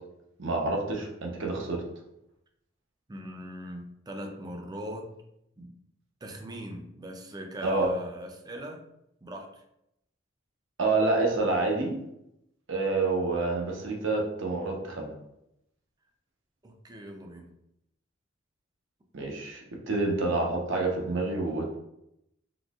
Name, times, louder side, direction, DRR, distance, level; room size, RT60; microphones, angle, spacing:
voice 1, 0.4-1.8 7.6-7.9 10.8-12.0 12.7-15.1 19.1-21.8, right 3 dB, 70° right, 1 dB, 0.8 m, -28 dB
voice 2, 3.1-5.1 5.6-5.8 6.2-8.8 9.2-9.6 16.6-17.5, equal, 20° right, 4 dB, 0.4 m, -40 dB
3.8 x 2.7 x 2.4 m, 0.81 s
head